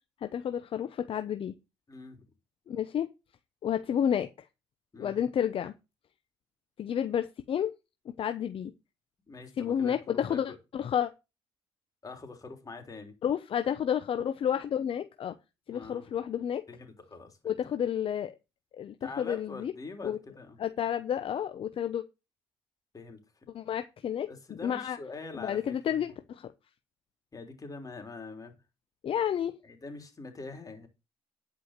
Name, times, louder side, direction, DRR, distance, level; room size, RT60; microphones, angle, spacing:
voice 1, 0.2-1.5 2.7-3.1 3.6-4.3 5.0-5.7 6.8-7.7 8.2-8.7 9.6-11.1 13.2-15.3 15.7-16.6 17.4-18.3 18.8-19.7 20.0-20.2 20.6-22.0 23.5-25.0 25.4-26.5 29.0-29.5, left 9 dB, 55° left, 9 dB, 0.9 m, -30 dB
voice 2, 1.9-2.3 4.9-5.2 9.3-10.6 12.0-13.1 15.7-16.0 16.7-17.5 19.0-20.6 22.9-23.2 24.3-26.0 27.3-28.5 29.6-30.9, left 3 dB, 35° left, 5 dB, 3.5 m, -44 dB
11.0 x 5.0 x 6.6 m, 0.28 s
supercardioid pair, 75°, 11 cm